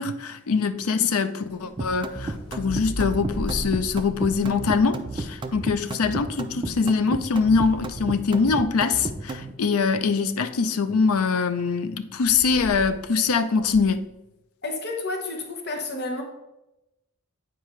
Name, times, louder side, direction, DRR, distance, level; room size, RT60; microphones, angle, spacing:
voice 1, 0.0-14.0, left 5 dB, 80° left, 0.5 m, -23 dB
sound 1, 1.5-5.6 6.6-8.9 12.2-13.1 13.5-14.0, equal, 25° left, 1.7 m, -38 dB
sound 2, 1.8-9.5, right 2 dB, 20° right, 0.4 m, -32 dB
voice 2, 14.6-16.2, left 2 dB, 50° left, 1.0 m, -30 dB
9.0 x 4.6 x 3.2 m
head